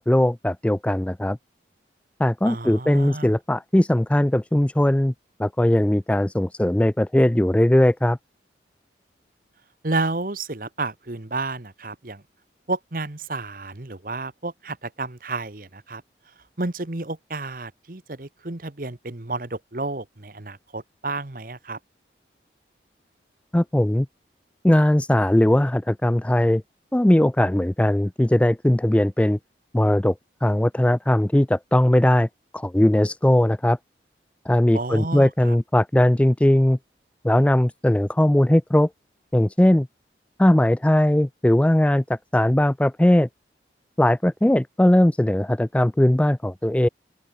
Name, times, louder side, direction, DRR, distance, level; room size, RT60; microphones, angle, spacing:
voice 1, 0.0-1.4 2.2-5.1 5.4-8.2 23.5-24.1 24.6-26.6 26.9-29.4 29.7-30.1 30.4-32.3 32.5-33.8 34.5-36.8 37.2-38.9 39.3-39.9 40.4-43.3 44.0-46.9, left 1 dB, 5° left, 0.3 m, -19 dB
voice 2, 2.4-3.3 9.8-12.2 12.7-16.0 16.6-21.8 34.7-35.6, right 3 dB, 50° right, 1.3 m, -31 dB
open air
head